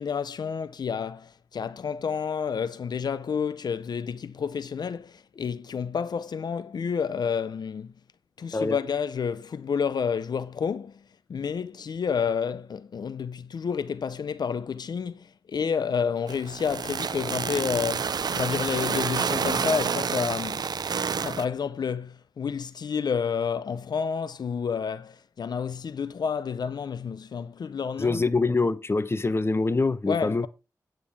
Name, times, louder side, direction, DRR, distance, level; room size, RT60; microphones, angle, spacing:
voice 1, 0.0-7.9 8.4-11.0 11.3-20.7 21.2-28.2 30.1-30.5, left 6 dB, 75° left, 0.6 m, -30 dB
sound 1, 16.3-21.5, right 6 dB, 70° right, 0.5 m, -29 dB
voice 2, 28.0-30.5, left 3 dB, 35° left, 0.9 m, -25 dB
9.0 x 8.8 x 3.5 m
cardioid pair, 55°, 7 cm